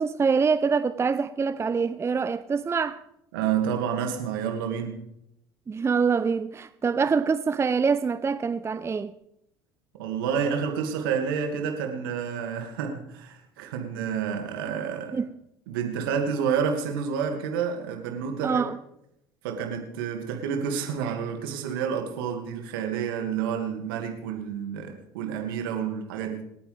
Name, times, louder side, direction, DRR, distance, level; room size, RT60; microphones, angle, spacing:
voice 1, 0.0-3.0 5.7-9.1 15.1-15.3 18.4-18.8, right 5 dB, 20° right, 0.6 m, -25 dB
voice 2, 3.3-5.0 10.0-15.2 15.7-18.6 19.4-26.4, right 7 dB, 75° right, 2.2 m, -29 dB
27.0 x 9.0 x 3.4 m
hypercardioid pair, 65°, 12 cm